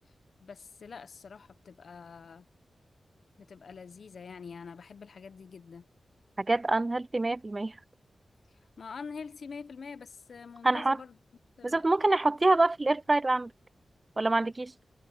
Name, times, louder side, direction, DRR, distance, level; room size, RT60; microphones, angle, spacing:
voice 1, 0.4-2.5 3.4-5.9 8.5-11.2 11.6-11.9, left 5 dB, 65° left, 0.7 m, -45 dB
voice 2, 6.4-7.8 10.6-11.0 11.6-13.5 14.2-14.7, right 2 dB, 25° right, 0.3 m, -26 dB
wide cardioid pair, 155°, 0 cm